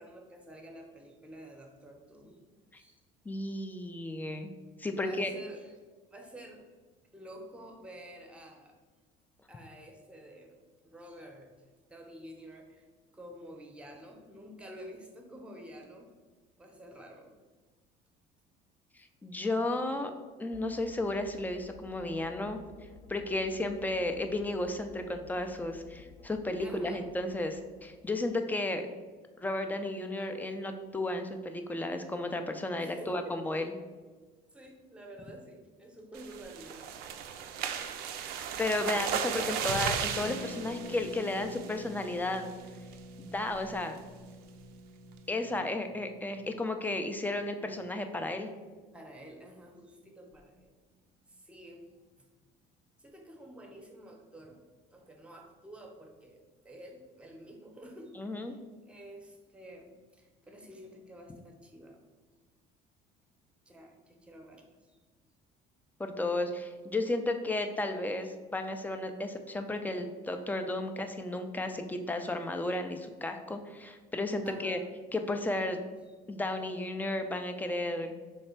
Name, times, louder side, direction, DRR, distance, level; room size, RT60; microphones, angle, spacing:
voice 1, 0.0-2.4 2.8-3.0 4.9-5.7 6.1-6.6 7.1-8.7 9.5-10.6 10.8-11.5 11.9-12.9 13.1-16.1 16.6-17.4 26.6-27.0 32.8-33.7 34.5-36.9 48.9-50.7 51.3-51.9 52.2-52.3 53.0-54.6 54.9-62.0 63.7-65.0 70.7-70.8 74.4-74.9, right 1 dB, 5° right, 2 dB, 0.7 m, -50 dB
voice 2, 3.3-4.5 4.8-5.3 19.2-20.1 20.4-22.6 23.1-29.0 29.4-33.7 38.6-42.5 43.2-44.0 45.3-48.5 58.2-58.6 66.0-74.8 75.1-75.8 76.3-78.1, left 2 dB, 10° left, 6 dB, 0.3 m, -33 dB
sound 1, 20.5-28.7, left 4 dB, 40° left, 0.8 m, -54 dB
sound 2, 36.1-41.9 42.3-42.6 42.9-43.0 43.4-43.7, right 8 dB, 75° right, 0.4 m, -35 dB
Harp, 40.2-49.8 50.1-50.2 50.3-50.6, left 1 dB, 75° left, 0.7 m, -48 dB
3.3 x 3.2 x 4.4 m, 1.3 s
cardioid pair, 120°, 16 cm